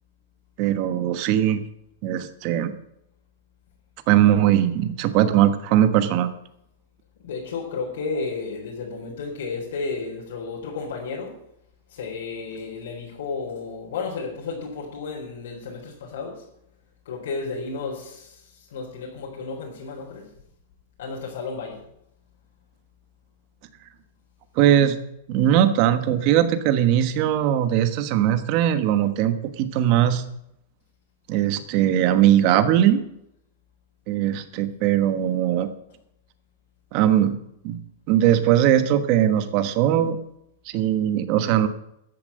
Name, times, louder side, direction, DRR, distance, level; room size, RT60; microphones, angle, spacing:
voice 1, 0.6-1.6 2.0-2.7 4.1-6.3 24.6-25.0 25.3-30.2 31.3-33.0 34.1-35.7 36.9-37.4 37.6-37.8 38.1-40.2 40.7-41.7, right 11 dB, 40° right, 10 dB, 1.2 m, -20 dB
voice 2, 7.2-11.3 11.9-16.4 17.1-18.4 18.7-20.3 21.0-21.8, left 4 dB, 75° left, -3 dB, 4.1 m, -32 dB
13.5 x 7.4 x 7.6 m, 0.78 s
supercardioid pair, 155°, 0 cm